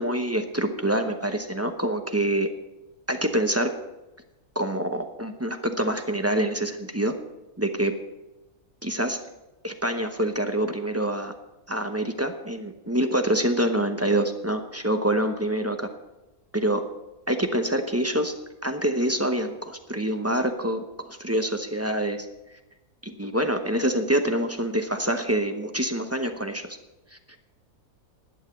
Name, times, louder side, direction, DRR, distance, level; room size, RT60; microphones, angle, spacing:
voice 1, 0.0-2.5 3.1-3.7 4.5-7.1 7.6-7.9 8.8-9.2 9.6-11.3 11.7-15.9 16.5-16.8 17.3-18.3 18.6-22.3 23.0-26.8 27.3-27.4, right 1 dB, 15° right, 6 dB, 0.6 m, -26 dB
11.5 x 9.2 x 7.1 m, 1.0 s
omnidirectional pair, 1.6 m